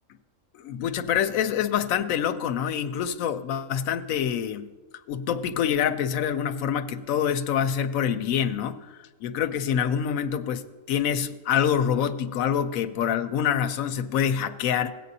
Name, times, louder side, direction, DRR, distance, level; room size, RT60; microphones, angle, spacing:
voice 1, 0.5-4.7 5.1-14.9, left 8 dB, 80° left, 10 dB, 1.0 m, -26 dB
17.5 x 8.5 x 2.7 m, 1.3 s
omnidirectional pair, 1.4 m